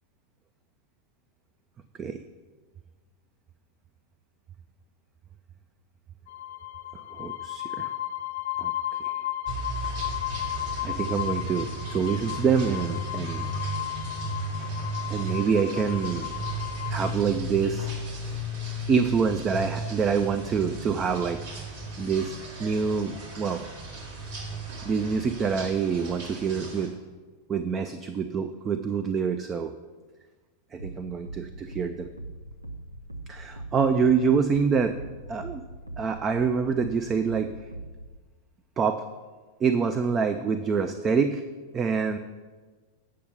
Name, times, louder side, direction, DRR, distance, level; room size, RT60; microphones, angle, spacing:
sound 1, 6.3-17.1, left 13 dB, 55° left, 0.3 m, -34 dB
voice 1, 7.1-7.9 8.6-8.7 10.8-13.5 15.1-16.3 16.9-17.9 18.2-18.4 18.9-21.6 22.0-23.6 24.9-26.9 27.5-29.7 30.7-32.1 33.3-35.0 35.3-35.6 36.0-37.5 38.8-39.0 39.6-41.4 41.7-42.2, right 6 dB, 25° right, 9 dB, 0.4 m, -26 dB
sound 2, 9.5-26.9, right 1 dB, 55° right, 2.6 m, -35 dB
sound 3, 30.8-38.2, right 2 dB, 85° right, 0.6 m, -41 dB
8.4 x 6.2 x 5.6 m, 1.4 s
figure-of-eight pair, 90°, 0 cm